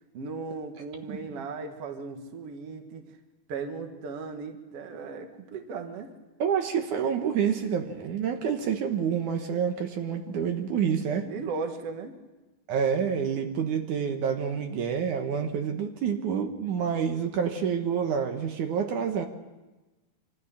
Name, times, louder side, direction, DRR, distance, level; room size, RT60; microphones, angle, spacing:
voice 1, 0.1-3.0 3.5-6.1 11.2-12.2, right 4 dB, 50° right, 6 dB, 2.3 m, -37 dB
voice 2, 6.4-11.3 12.7-19.3, right 7 dB, 70° right, 5 dB, 2.7 m, -28 dB
25.5 x 13.0 x 10.0 m, 1.2 s
omnidirectional pair, 3.7 m